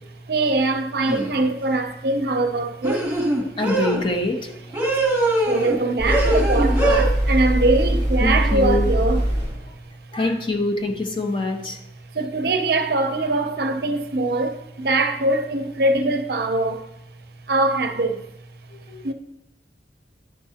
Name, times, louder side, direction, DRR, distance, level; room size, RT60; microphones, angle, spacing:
voice 1, 0.3-3.2 4.9-9.2 12.1-16.9 17.5-18.2 19.0-19.1, right 2 dB, 60° right, 0.6 m, -22 dB
sound 1, 1.1-1.4 2.8-4.0 4.7-5.8 6.1-7.1, right 1 dB, 10° right, 1.6 m, -22 dB
voice 2, 3.6-4.5 8.2-8.9 10.1-11.8 18.7-19.0, left 2 dB, 25° left, 0.6 m, -24 dB
sound 2, 6.0-9.7, right 1 dB, 80° left, 2.2 m, -22 dB
10.5 x 5.9 x 2.8 m
head